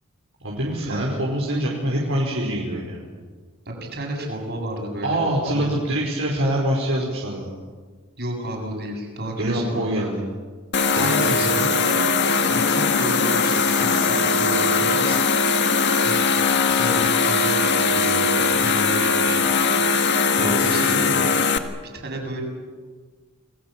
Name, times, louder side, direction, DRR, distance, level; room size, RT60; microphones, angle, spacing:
voice 1, 0.4-3.0 5.0-7.5 9.4-10.2 11.0-11.7 20.3-21.1, right 1 dB, 70° right, -3 dB, 5.1 m, -25 dB
voice 2, 3.7-5.2 5.5-5.7 8.2-9.9 10.9-11.2 11.8-12.0 12.5-15.2 16.0-16.2 16.7-19.5 20.4-21.1 21.9-22.4, right 1 dB, 50° right, 1 dB, 7.7 m, -31 dB
sound 1, 10.7-21.6, left 4 dB, 55° left, 1.7 m, -20 dB
29.5 x 20.5 x 7.5 m, 1.5 s
head